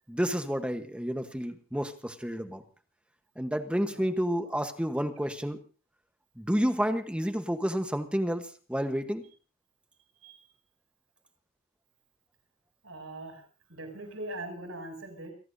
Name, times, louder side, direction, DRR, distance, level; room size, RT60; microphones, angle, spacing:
voice 1, 0.1-2.6 3.4-5.6 6.4-9.2, equal, 5° right, 8 dB, 1.1 m, -30 dB
voice 2, 12.8-13.4 13.7-15.3, right 1 dB, 75° right, 4 dB, 7.0 m, -41 dB
29.0 x 18.0 x 2.7 m, 0.35 s
head